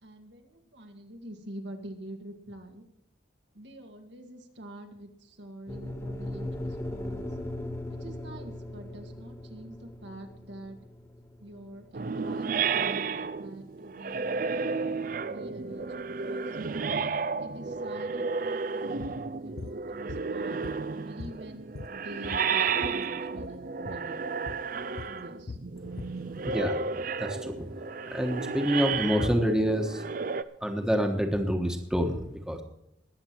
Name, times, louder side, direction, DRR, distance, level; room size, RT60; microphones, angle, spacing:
voice 1, 0.0-2.8 3.5-7.3 7.9-10.8 11.4-14.6 14.9-16.6 17.3-19.0 19.4-24.3 25.1-25.6, right 1 dB, 80° right, 4 dB, 2.0 m, -46 dB
sound 1, 5.7-13.9, left 1 dB, 15° left, 1.5 m, -39 dB
sound 2, 11.9-30.4, right 5 dB, 50° right, 0.5 m, -32 dB
sound 3, 19.0-19.2 19.6-19.8 20.1-20.9 21.2-23.0 23.3-23.6 23.8-24.0 24.5-24.7 25.0-26.7, left 3 dB, 55° left, 0.5 m, -42 dB
voice 2, 27.2-27.7 28.1-30.0 30.6-32.6, equal, 5° right, 3 dB, 1.3 m, -27 dB
20.5 x 7.8 x 4.5 m, 0.80 s
head